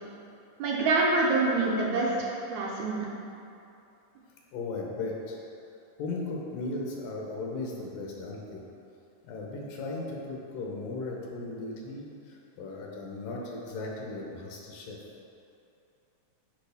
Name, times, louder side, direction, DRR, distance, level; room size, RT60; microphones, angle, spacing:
voice 1, 0.6-3.1, right 3 dB, 70° right, -4 dB, 1.9 m, -26 dB
voice 2, 4.5-5.4 6.0-8.6 9.2-15.0, left 3 dB, 85° left, -2 dB, 2.7 m, -36 dB
9.2 x 5.0 x 3.5 m, 2.7 s
omnidirectional pair, 3.8 m